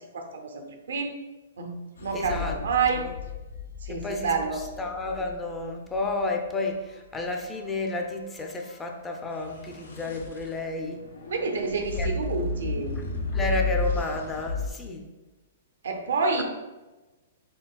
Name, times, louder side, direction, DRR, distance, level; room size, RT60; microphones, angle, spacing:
voice 1, 0.1-1.1 1.6-1.7 2.0-3.0 3.8-4.6 11.3-13.0 15.8-16.4, right 4 dB, 85° right, 5 dB, 0.6 m, -28 dB
sound 1, 2.0-6.1 9.4-14.7, left 4 dB, 90° left, 0.6 m, -33 dB
voice 2, 2.1-2.6 2.9-3.2 3.9-11.0 12.0-12.1 13.0-13.1 13.3-15.1 16.3-16.4, left 2 dB, 15° left, 2 dB, 0.4 m, -31 dB
4.5 x 3.3 x 2.3 m, 1.1 s
hypercardioid pair, 140°, 0 cm